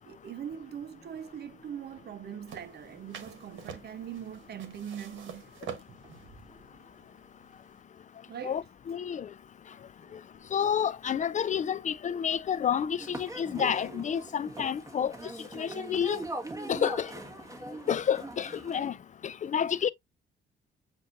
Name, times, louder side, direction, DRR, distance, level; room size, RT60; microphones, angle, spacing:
voice 1, 0.0-5.5 5.9-6.0 8.3-8.6 10.0-10.6, right 9 dB, 55° right, 0.7 m, -42 dB
sound 1, 0.6-8.0, right 2 dB, 35° right, 3.4 m, -61 dB
sound 2, 2.5-7.8, right 7 dB, 75° right, 1.1 m, -46 dB
voice 2, 8.4-9.3 10.5-15.1 15.5-16.2 16.7-17.1 17.9-18.9 19.2-19.9, left 8 dB, 40° left, 0.4 m, -29 dB
sound 3, 13.0-18.9, right 2 dB, 15° right, 1.5 m, -41 dB
7.5 x 2.6 x 2.5 m
cardioid pair, 90°, 20 cm